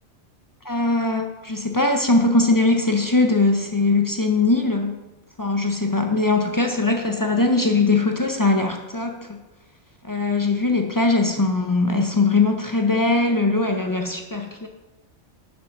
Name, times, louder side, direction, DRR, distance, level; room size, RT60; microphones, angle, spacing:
voice 1, 0.6-5.0 5.4-9.4 10.0-14.7, left 3 dB, 35° left, 3 dB, 0.3 m, -21 dB
6.2 x 5.9 x 6.0 m, 1.1 s
omnidirectional pair, 1.3 m